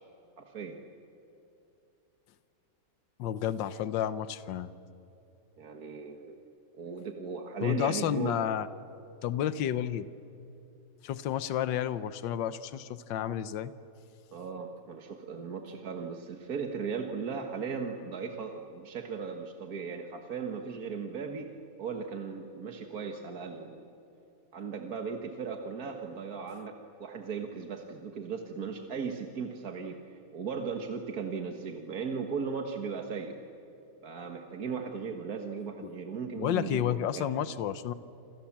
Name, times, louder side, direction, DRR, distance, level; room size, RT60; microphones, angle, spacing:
voice 1, 0.4-0.8 5.6-6.3 6.8-8.4 14.3-21.5 21.8-23.9 24.5-33.4 34.0-37.3, right 5 dB, 55° right, 4 dB, 1.8 m, -37 dB
voice 2, 3.2-4.7 7.6-8.7 9.2-10.1 11.0-13.7 36.4-37.9, left 10 dB, 80° left, 14 dB, 1.5 m, -31 dB
28.0 x 27.5 x 7.4 m, 2.8 s
omnidirectional pair, 2.0 m